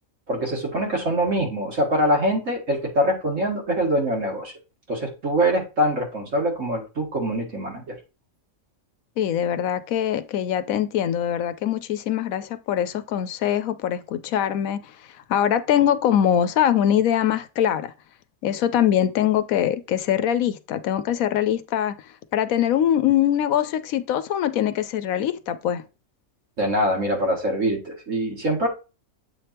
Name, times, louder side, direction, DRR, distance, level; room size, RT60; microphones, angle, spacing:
voice 1, 0.3-4.5 4.9-8.0 26.6-28.7, equal, 65° right, 2.1 m, -24 dB
voice 2, 9.2-14.9 15.3-17.9 18.4-21.9 22.3-25.8, left 10 dB, 85° left, 1.1 m, -22 dB
7.8 x 3.4 x 4.3 m
omnidirectional pair, 1.4 m